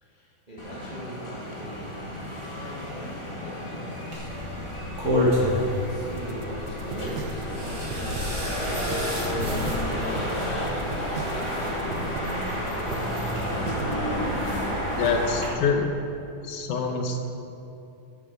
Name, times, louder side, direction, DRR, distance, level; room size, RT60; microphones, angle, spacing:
voice 1, 0.0-4.5 4.8-5.1 5.4-8.6 9.4-13.2, equal, 45° right, -5 dB, 0.5 m, -42 dB
sound 1, 0.6-15.5, equal, 35° left, 0.4 m, -31 dB
sound 2, 4.1-15.5, left 1 dB, 30° right, 3.0 m, -31 dB
sound 3, 6.2-14.1, right 7 dB, 90° right, 2.6 m, -39 dB
voice 2, 15.0-15.9 16.4-17.2, left 5 dB, 75° left, 4 dB, 2.0 m, -25 dB
12.0 x 10.5 x 5.2 m, 2.8 s
omnidirectional pair, 4.2 m